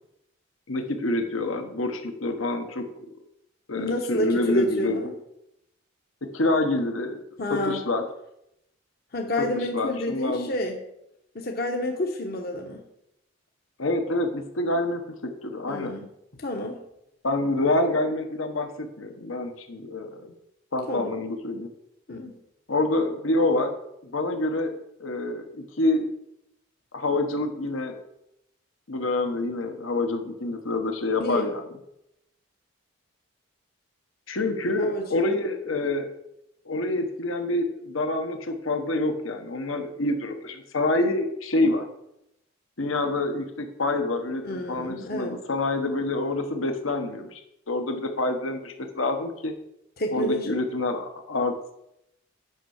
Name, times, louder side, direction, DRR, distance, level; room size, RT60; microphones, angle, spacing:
voice 1, 0.7-2.8 3.7-5.0 6.2-7.2 7.5-8.0 9.4-10.5 13.8-16.0 17.2-20.3 20.7-21.7 22.7-23.7 24.0-26.1 26.9-28.0 28.9-31.6 34.3-36.1 36.6-41.9 42.8-47.4 47.7-49.5 50.1-51.7, left 2 dB, 75° left, 6 dB, 1.2 m, -27 dB
voice 2, 3.7-5.1 7.4-7.8 9.1-10.8 11.3-12.8 15.7-16.1 16.4-16.8 20.9-21.1 22.1-22.4 31.2-31.5 34.8-35.3 44.4-45.4 50.0-50.5, left 1 dB, 50° left, 2 dB, 1.1 m, -29 dB
9.1 x 5.5 x 6.5 m, 0.83 s
head